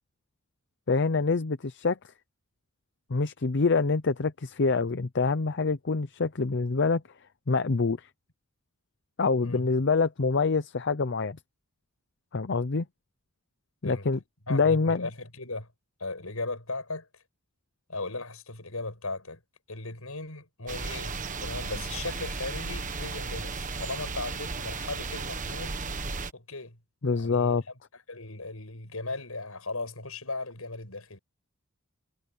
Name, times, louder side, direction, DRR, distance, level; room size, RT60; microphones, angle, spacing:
voice 1, 0.9-2.0 3.1-7.0 7.5-8.1 9.2-11.4 12.3-12.8 13.8-14.2 14.5-15.1 27.0-27.6, left 4 dB, 55° left, 0.7 m, -26 dB
voice 2, 14.5-15.7 16.0-17.1 17.9-19.4 19.7-26.0 26.3-26.8 27.1-31.2, left 3 dB, 80° left, 7.1 m, -37 dB
sound 1, 20.7-26.3, right 4 dB, 35° right, 1.3 m, -35 dB
head